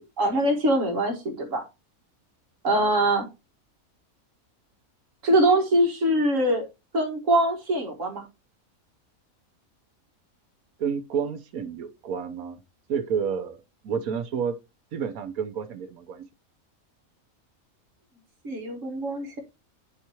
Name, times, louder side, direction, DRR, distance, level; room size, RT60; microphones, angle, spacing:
voice 1, 0.2-1.6 2.6-3.3 5.2-6.7 6.9-8.2 18.4-19.4, right 1 dB, 65° right, 1.9 m, -23 dB
voice 2, 10.8-12.6 12.9-13.6 13.8-14.6 14.9-16.3, right 7 dB, 85° right, 1.3 m, -30 dB
9.9 x 4.6 x 3.0 m
omnidirectional pair, 1.5 m